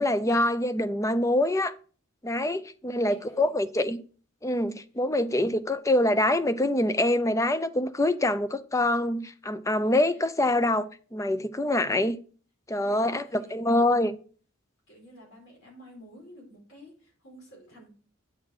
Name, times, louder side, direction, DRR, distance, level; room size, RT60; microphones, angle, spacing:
voice 1, 0.0-1.7 2.2-4.0 4.4-12.2 12.7-14.2, left 1 dB, 15° left, 0.6 m, -25 dB
voice 2, 2.9-3.6 5.3-5.5 12.7-14.1 14.9-17.9, equal, 80° left, 4.5 m, -51 dB
9.5 x 5.6 x 4.8 m
head